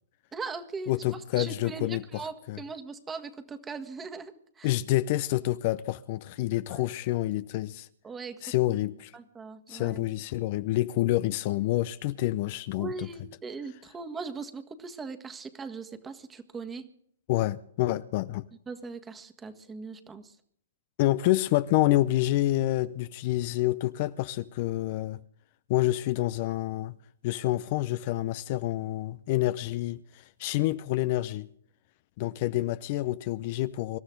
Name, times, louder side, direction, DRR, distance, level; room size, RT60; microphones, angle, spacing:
voice 1, 0.3-4.7 6.7-6.9 8.0-8.8 9.1-10.0 12.8-16.9 18.7-20.4, right 4 dB, 15° right, 1.6 m, -40 dB
voice 2, 0.9-2.2 2.5-2.6 4.6-7.9 8.4-9.1 9.7-13.1 17.3-18.4 21.0-25.2 25.7-26.9 27.2-31.5 32.2-34.0, left 16 dB, 45° left, 0.6 m, -28 dB
25.5 x 13.0 x 3.9 m
hypercardioid pair, 135°, 0 cm